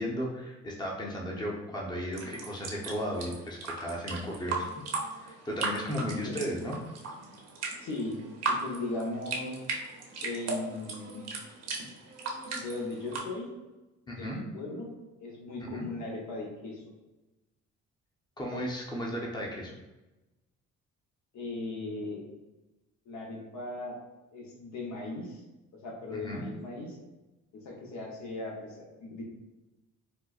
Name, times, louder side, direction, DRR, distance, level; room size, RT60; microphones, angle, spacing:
voice 1, 0.0-4.7 5.2-6.8 14.1-14.4 15.7-15.9 18.4-19.7 26.1-26.4, equal, 15° left, -2 dB, 0.7 m, -35 dB
sound 1, 2.1-13.2, right 3 dB, 55° right, 0.8 m, -37 dB
voice 2, 7.8-8.2 8.5-9.6 10.2-11.3 12.5-13.5 14.1-14.9 15.2-16.8 21.3-22.2 23.1-24.0 24.3-25.4 25.7-27.0 27.6-29.2, left 2 dB, 70° left, -1 dB, 0.9 m, -38 dB
4.2 x 2.1 x 2.4 m, 1.0 s
cardioid pair, 90°, 30 cm